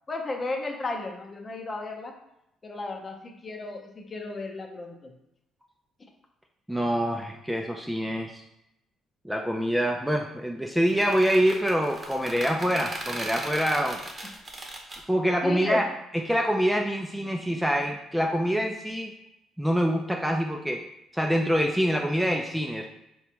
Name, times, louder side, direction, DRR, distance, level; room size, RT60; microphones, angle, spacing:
voice 1, 0.1-2.1 2.6-5.1 15.4-15.9, left 2 dB, 35° left, 2 dB, 0.6 m, -34 dB
voice 2, 6.7-8.4 9.2-14.0 15.1-15.9 16.1-19.1 19.6-20.8 21.1-22.9, equal, 5° right, 2 dB, 0.3 m, -25 dB
sound 1, 10.9-15.0, right 1 dB, 30° right, 0.7 m, -38 dB
3.9 x 2.3 x 2.9 m, 0.83 s
supercardioid pair, 70°, 0 cm